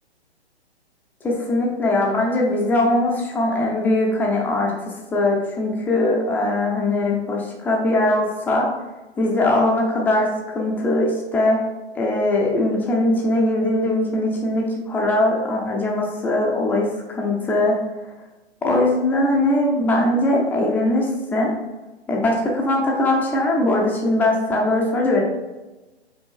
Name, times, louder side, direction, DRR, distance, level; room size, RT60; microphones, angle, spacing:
voice 1, 1.2-8.7 9.2-11.6 12.0-17.8 18.6-21.5 22.1-25.2, left 1 dB, 5° left, -1 dB, 0.5 m, -21 dB
5.5 x 4.4 x 4.6 m, 1.1 s
figure-of-eight pair, 130°, 33 cm